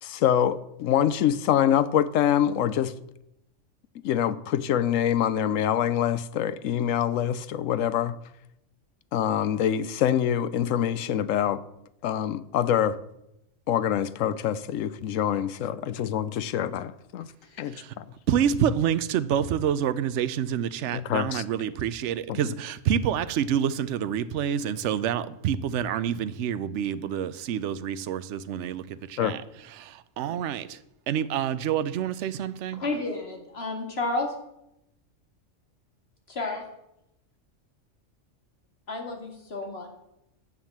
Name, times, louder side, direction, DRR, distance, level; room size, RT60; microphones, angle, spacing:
voice 1, 0.0-2.9 4.0-8.1 9.1-11.6 12.0-13.0 13.7-17.3 17.6-18.0 20.9-21.4 22.3-22.6 29.2-29.4, left 10 dB, 90° left, 1.0 m, -25 dB
voice 2, 18.3-28.8 29.1-29.4 29.8-30.8 31.1-32.8, right 9 dB, 70° right, 0.9 m, -27 dB
voice 3, 32.7-34.3 36.3-36.6 38.9-39.9, left 2 dB, 55° left, 2.2 m, -31 dB
10.5 x 7.4 x 7.2 m
omnidirectional pair, 1.3 m